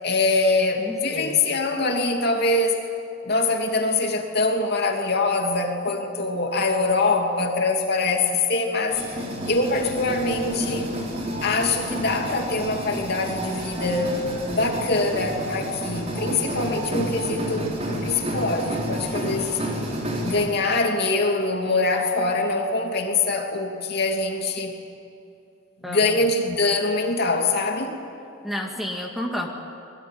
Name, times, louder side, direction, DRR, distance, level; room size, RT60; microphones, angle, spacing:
voice 1, 0.0-2.8 3.2-9.0 9.4-11.0 11.4-14.2 14.5-17.7 18.0-19.6 20.2-24.7 25.8-27.9, left 3 dB, 50° left, 2 dB, 2.9 m, -23 dB
voice 2, 0.8-1.6 25.8-26.0 28.4-29.5, left 1 dB, ahead, 1 dB, 2.2 m, -31 dB
sound 1, 8.9-20.5, equal, 30° right, 4.3 m, -30 dB
26.5 x 21.5 x 9.4 m, 2.7 s
head